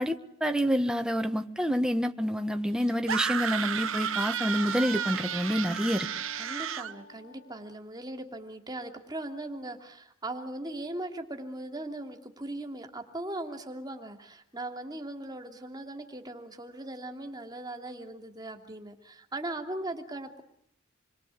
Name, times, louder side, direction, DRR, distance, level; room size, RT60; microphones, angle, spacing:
voice 1, 0.0-6.1, equal, 5° right, 6 dB, 1.6 m, -28 dB
Wind instrument woodwind instrument, 3.0-7.7, left 4 dB, 55° left, 3.2 m, -49 dB
sound 1, 3.1-6.9, right 8 dB, 75° right, 1.0 m, -32 dB
voice 2, 6.3-20.4, right 1 dB, 20° right, 4 dB, 2.9 m, -39 dB
28.0 x 23.0 x 8.5 m, 0.67 s
head